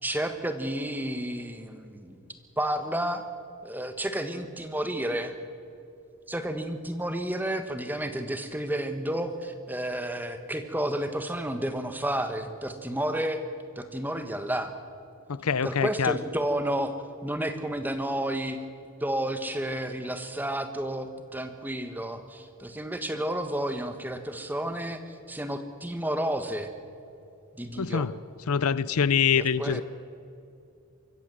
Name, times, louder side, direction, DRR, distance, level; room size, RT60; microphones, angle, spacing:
voice 1, 0.0-2.2 2.6-3.3 3.6-5.3 6.3-13.4 13.7-14.7 15.6-16.9 17.2-18.6 19.0-26.7 27.5-28.1 29.4-29.8, right 1 dB, 10° right, 8 dB, 1.3 m, -31 dB
voice 2, 15.3-16.2 27.8-28.1 28.5-29.8, left 6 dB, 85° left, 18 dB, 0.6 m, -25 dB
24.5 x 14.5 x 7.8 m, 2.7 s
head